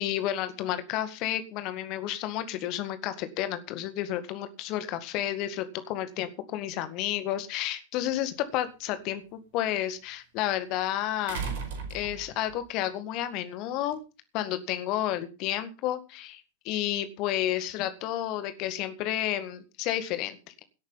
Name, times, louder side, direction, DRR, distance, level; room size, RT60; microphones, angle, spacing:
voice 1, 0.0-11.4 11.9-14.0 14.3-20.6, left 12 dB, 40° left, 11 dB, 2.0 m, -31 dB
sound 1, 8.0-8.1 11.3-12.6 13.9-14.0, right 5 dB, 55° right, 5.0 m, -35 dB
17.5 x 8.7 x 5.5 m, 0.32 s
figure-of-eight pair, 90°, 0 cm